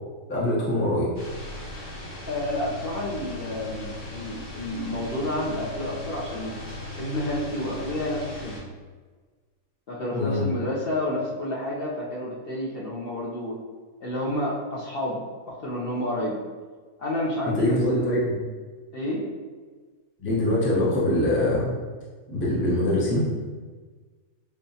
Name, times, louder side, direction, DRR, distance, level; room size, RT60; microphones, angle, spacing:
voice 1, 0.3-1.1 10.1-10.5 17.5-18.4 20.2-21.7 22.3-23.3, left 1 dB, 15° left, -6 dB, 0.5 m, -23 dB
sound 1, 1.1-8.6, left 1 dB, 30° left, 1.5 m, -38 dB
voice 2, 2.3-6.6 6.9-8.6 9.9-13.6 14.0-16.4 17.0-18.2 18.9-19.3, left 1 dB, 55° left, -6 dB, 0.8 m, -30 dB
5.4 x 2.3 x 2.7 m, 1.4 s
omnidirectional pair, 1.4 m